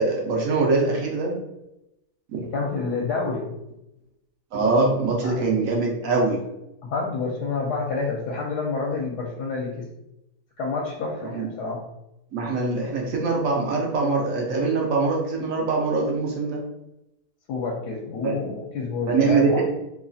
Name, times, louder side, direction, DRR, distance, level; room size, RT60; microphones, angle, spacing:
voice 1, 0.0-1.4 2.3-2.4 4.5-6.4 11.3-11.5 12.3-16.6 18.2-18.3 19.1-19.6, right 3 dB, 65° right, -1 dB, 0.9 m, -23 dB
voice 2, 2.4-3.5 5.2-5.5 6.8-9.9 10.6-11.8 17.5-19.6, left 4 dB, 80° left, -2 dB, 1.1 m, -28 dB
2.9 x 2.6 x 2.3 m, 0.89 s
omnidirectional pair, 1.7 m